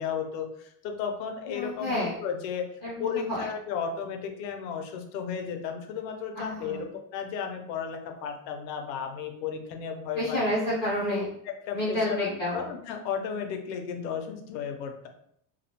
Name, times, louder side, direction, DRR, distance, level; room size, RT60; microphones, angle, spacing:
voice 1, 0.0-2.7 3.0-10.4 11.1-11.2 11.7-15.1, left 7 dB, 90° left, 4 dB, 0.6 m, -34 dB
voice 2, 1.5-2.1 2.8-3.5 6.3-6.9 10.1-11.3 11.7-12.7, left 1 dB, 20° left, -10 dB, 0.4 m, -29 dB
2.3 x 2.1 x 2.8 m, 0.69 s
cardioid pair, 170°, 50 cm